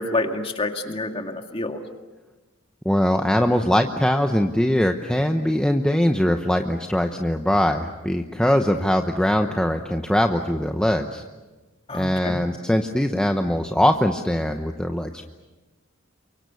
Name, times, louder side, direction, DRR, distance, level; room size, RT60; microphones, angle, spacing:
voice 1, 0.0-1.8 11.9-12.4, left 2 dB, 25° left, 4 dB, 2.3 m, -27 dB
voice 2, 2.8-11.2 11.9-15.3, equal, 5° left, 4 dB, 0.9 m, -21 dB
29.0 x 24.0 x 7.0 m, 1.2 s
head